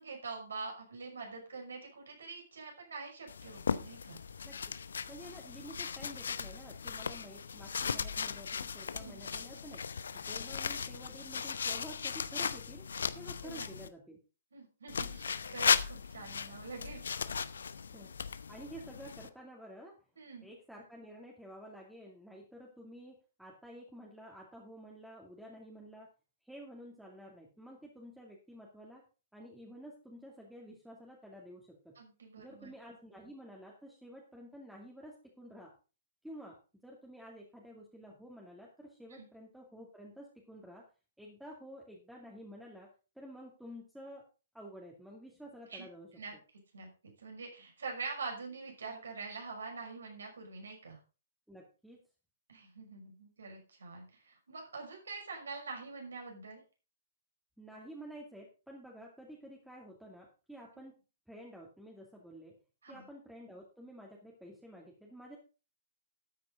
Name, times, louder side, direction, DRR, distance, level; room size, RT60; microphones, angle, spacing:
voice 1, 0.0-4.2 8.9-9.3 13.4-13.7 14.5-17.4 20.2-20.5 32.0-32.7 39.1-39.3 45.7-45.9 46.2-46.3 46.7-51.0 52.5-56.6 62.8-63.1, right 4 dB, 70° right, 2 dB, 5.8 m, -45 dB
sound 1, 3.3-13.9 14.9-19.3, left 6 dB, 70° left, 0.8 m, -37 dB
voice 2, 4.4-4.7 5.1-9.8 10.1-12.8 13.1-14.2 17.9-18.1 18.5-19.9 20.4-26.1 26.4-29.0 29.3-32.0 32.4-35.7 36.2-40.8 41.2-42.9 43.2-44.2 44.5-46.1 51.5-52.0 57.6-61.0 61.3-62.6 62.9-65.4, equal, ahead, -2 dB, 2.5 m, -51 dB
13.0 x 9.5 x 3.9 m, 0.33 s
figure-of-eight pair, 120°, 0 cm